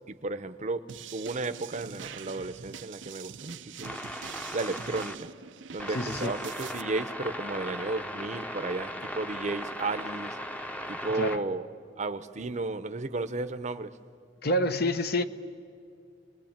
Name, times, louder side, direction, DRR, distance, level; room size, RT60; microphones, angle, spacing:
voice 1, 0.1-0.8 1.1-4.0 4.5-5.3 5.7-10.4 10.9-11.6 12.0-13.9, right 3 dB, 40° right, 0.8 m, -33 dB
sound 1, 0.9-6.8, right 7 dB, 85° right, 0.7 m, -44 dB
sound 2, 3.8-5.2 5.8-11.4, equal, 10° left, 0.8 m, -38 dB
voice 2, 5.9-6.4 11.1-11.4 14.4-15.2, left 1 dB, 60° left, 1.0 m, -28 dB
30.0 x 21.5 x 8.8 m
head